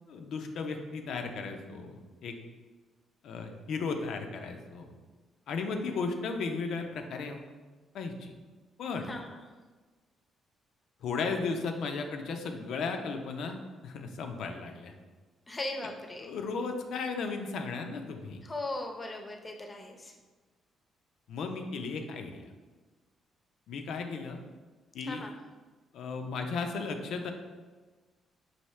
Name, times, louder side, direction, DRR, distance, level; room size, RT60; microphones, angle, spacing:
voice 1, 0.1-2.4 3.2-4.9 5.5-7.4 7.9-8.3 8.8-9.1 11.0-14.9 15.8-15.9 16.2-18.4 21.3-22.4 23.7-24.4 24.9-25.2 25.9-27.3, left 4 dB, 75° left, 5 dB, 0.5 m, -35 dB
voice 2, 9.1-9.4 15.5-16.3 18.4-20.1 25.1-25.4, left 2 dB, 25° left, 3 dB, 0.6 m, -38 dB
5.6 x 2.7 x 3.2 m, 1.3 s
cardioid pair, 90°, 0 cm